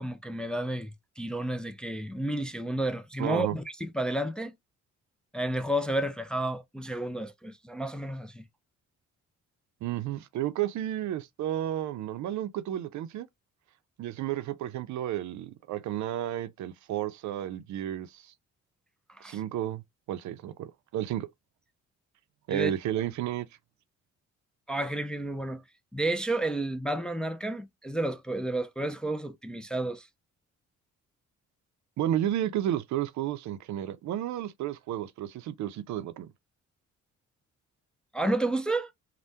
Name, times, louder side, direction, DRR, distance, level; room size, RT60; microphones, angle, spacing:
voice 1, 0.0-4.5 5.3-8.4 19.1-19.4 22.5-22.7 24.7-25.6 25.9-30.1 38.1-38.9, right 1 dB, 5° left, 0.3 m, -31 dB
voice 2, 3.2-3.6 9.8-13.3 14.0-18.3 19.2-19.8 20.1-21.3 22.5-23.5 32.0-36.3, right 12 dB, 70° right, 0.5 m, -32 dB
3.3 x 2.1 x 2.7 m
cardioid pair, 90°, 30 cm